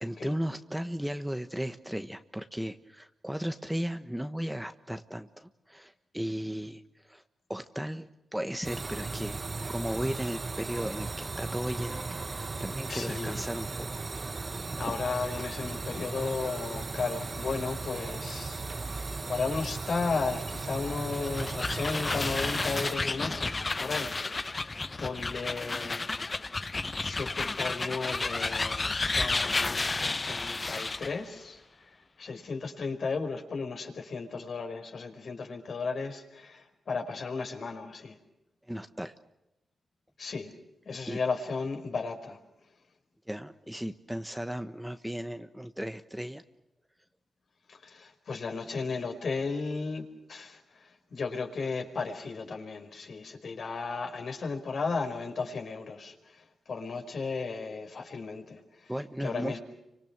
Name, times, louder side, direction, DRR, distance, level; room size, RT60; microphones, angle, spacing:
voice 1, 0.0-7.2 7.5-9.4 9.7-14.0 14.8-14.9 38.7-39.1 41.1-41.2 43.3-46.4 58.9-59.6, equal, 5° right, 8 dB, 1.3 m, -36 dB
sound 1, 8.6-23.0, right 3 dB, 35° right, 1.1 m, -36 dB
voice 2, 12.9-13.5 14.8-24.6 25.0-26.2 27.0-31.6 31.9-38.2 40.2-40.5 40.9-42.4 47.7-58.9 59.2-59.6, left 4 dB, 60° left, 4 dB, 5.2 m, -35 dB
sound 2, 21.1-31.2, left 3 dB, 30° left, 0.8 m, -32 dB
30.0 x 25.5 x 6.1 m, 0.90 s
cardioid pair, 90°, 0 cm